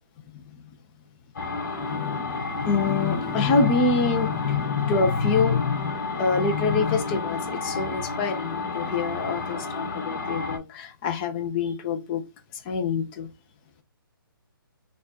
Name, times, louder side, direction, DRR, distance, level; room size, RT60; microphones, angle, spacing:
sound 1, 1.4-10.6, left 3 dB, 55° left, 1.5 m, -31 dB
voice 1, 1.7-12.2 12.6-13.3, left 4 dB, 25° left, 0.8 m, -26 dB
4.2 x 2.5 x 4.1 m
hypercardioid pair, 150°, 12 cm